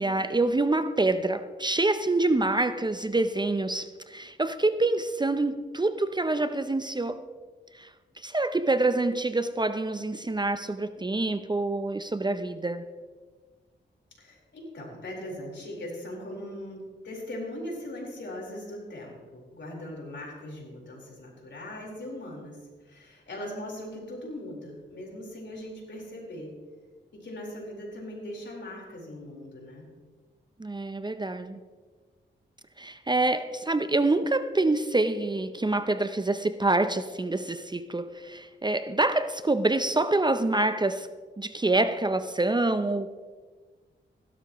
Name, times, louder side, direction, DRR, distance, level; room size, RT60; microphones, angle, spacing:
voice 1, 0.0-7.2 7.7-7.9 8.2-12.9 30.6-31.6 32.8-41.1 41.4-43.1, right 2 dB, 20° right, 0.6 m, -26 dB
voice 2, 14.2-26.5 27.1-29.9, left 1 dB, 65° left, 4.2 m, -40 dB
16.5 x 12.0 x 3.0 m
cardioid pair, 70°, 20 cm